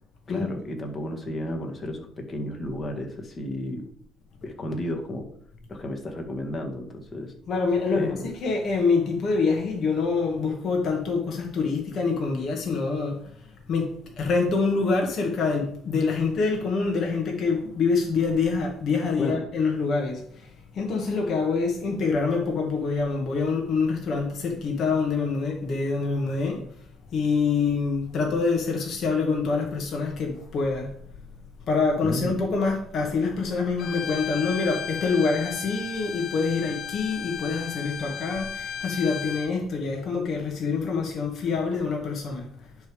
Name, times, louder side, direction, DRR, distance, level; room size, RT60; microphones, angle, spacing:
voice 1, 0.3-3.8 4.4-5.3 5.7-7.3 7.9-8.3 19.2-19.4 32.0-32.4, left 1 dB, 40° left, 1.8 m, -32 dB
voice 2, 7.5-26.6 27.1-30.9 31.7-42.5, left 4 dB, 55° left, 1.6 m, -26 dB
Bowed string instrument, 33.8-39.5, left 8 dB, 75° left, 0.8 m, -35 dB
10.5 x 3.5 x 5.0 m
cardioid pair, 90°, 0 cm